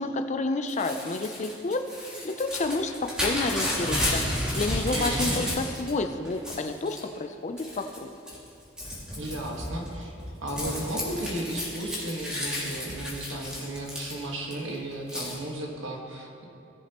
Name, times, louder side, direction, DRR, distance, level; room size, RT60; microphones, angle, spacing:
voice 1, 0.0-8.1, left 2 dB, 35° left, 7 dB, 0.5 m, -30 dB
Crumpling crinkling / Tearing, 0.7-5.9 6.2-7.0 7.6-8.0 8.3-14.5 15.1-15.3, left 1 dB, 5° right, 2.2 m, -32 dB
voice 2, 4.9-5.4 9.2-10.1 10.4-16.4, right 1 dB, 75° right, 0 dB, 1.6 m, -34 dB
18.0 x 7.4 x 3.0 m, 2.7 s
head